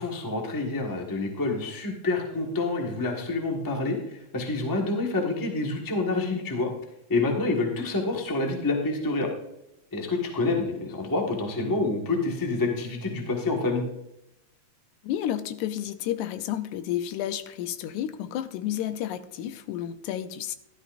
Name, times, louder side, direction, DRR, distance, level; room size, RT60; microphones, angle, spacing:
voice 1, 0.0-6.7 7.1-9.3 9.9-13.8, left 3 dB, 20° left, 1 dB, 0.5 m, -27 dB
voice 2, 15.0-20.6, left 11 dB, 85° left, 11 dB, 2.1 m, -31 dB
13.0 x 12.5 x 2.6 m, 0.84 s
omnidirectional pair, 3.5 m